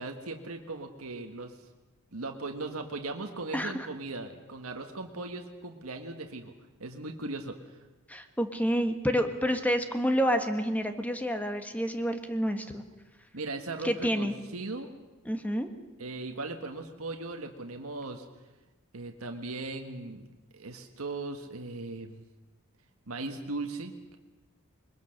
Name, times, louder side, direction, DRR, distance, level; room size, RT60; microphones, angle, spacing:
voice 1, 0.0-1.6 2.1-6.5 6.8-7.7 13.3-14.9 16.0-18.2 18.9-20.2 20.5-22.2 23.1-24.2, right 2 dB, 90° right, 4 dB, 1.6 m, -38 dB
voice 2, 3.5-3.9 8.1-12.8 13.8-14.3 15.2-15.7, equal, 5° left, 7 dB, 1.4 m, -28 dB
22.0 x 21.0 x 6.5 m, 1.1 s
head